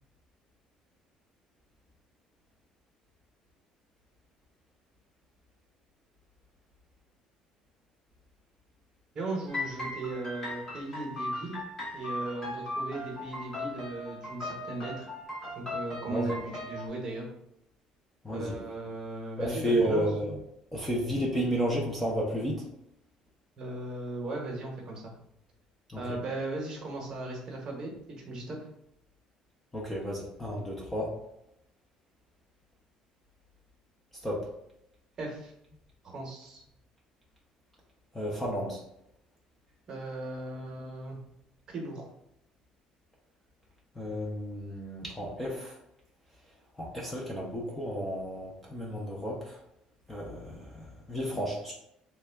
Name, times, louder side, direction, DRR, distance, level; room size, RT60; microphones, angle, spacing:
voice 1, 9.1-11.6 11.9-15.1 15.6-17.3 18.3-20.1 23.6-25.1 26.0-27.9 28.2-28.6 35.2-35.5 36.0-36.6 39.9-41.2 41.7-42.1, right 2 dB, 35° right, 0 dB, 0.8 m, -37 dB
sound 1, 9.5-16.9, left 1 dB, 25° left, 0.9 m, -38 dB
voice 2, 18.2-18.6 19.4-20.4 20.7-22.6 25.9-26.2 29.7-31.1 34.2-34.5 38.1-38.8 44.0-45.7 46.8-49.6 50.1-51.7, equal, 10° left, -3 dB, 0.5 m, -32 dB
3.4 x 2.2 x 3.3 m, 0.79 s
cardioid pair, 170°, 2 cm